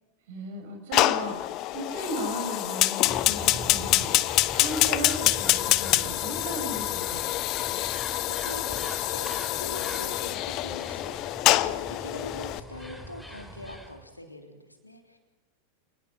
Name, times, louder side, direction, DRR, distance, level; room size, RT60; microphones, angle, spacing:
voice 1, 0.3-4.1 4.5-7.3, right 1 dB, 55° right, 4 dB, 7.2 m, -36 dB
Fire, 0.9-12.6, left 17 dB, 40° left, 0.8 m, -26 dB
sound 1, 3.1-14.0, left 1 dB, ahead, 3.1 m, -42 dB
voice 2, 7.7-15.2, left 1 dB, 85° left, 4 dB, 3.5 m, -43 dB
28.5 x 19.5 x 5.6 m, 1.2 s
figure-of-eight pair, 90°, 0 cm